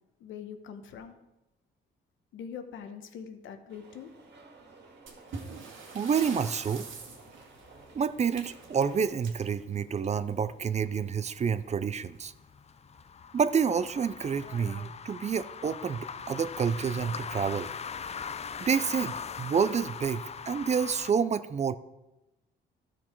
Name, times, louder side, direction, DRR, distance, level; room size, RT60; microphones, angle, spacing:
voice 1, 0.2-1.2 2.3-4.1, left 7 dB, 75° left, 8 dB, 1.1 m, -43 dB
sound 1, 3.7-9.0, right 3 dB, 60° right, 2.1 m, -54 dB
sound 2, 5.1-10.4 11.7-11.9 12.2-12.3 12.9-13.0 13.7-14.0, right 4 dB, 80° right, 2.0 m, -45 dB
voice 2, 5.9-6.9 7.9-12.3 13.3-17.7 18.6-21.8, right 6 dB, 35° right, 14 dB, 0.5 m, -28 dB
sound 3, 6.2-21.1, left 6 dB, 35° left, 0.5 m, -42 dB
13.0 x 6.2 x 4.5 m, 0.97 s
cardioid pair, 90°, 20 cm